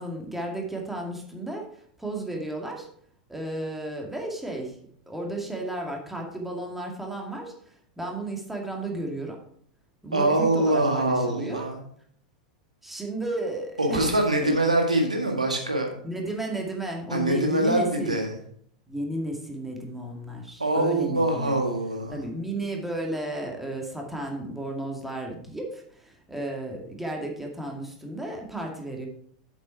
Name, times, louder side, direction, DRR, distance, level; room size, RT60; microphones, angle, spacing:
voice 1, 0.0-2.9 3.3-4.8 5.1-9.4 10.0-11.7 12.8-14.5 16.0-18.2 18.9-21.6 22.1-29.1, right 1 dB, 5° right, 0 dB, 2.3 m, -33 dB
voice 2, 10.1-11.8 13.8-15.9 17.1-18.3 20.6-22.2, right 1 dB, 90° right, 2 dB, 1.7 m, -24 dB
7.9 x 7.2 x 4.6 m, 0.62 s
figure-of-eight pair, 90°, 4 cm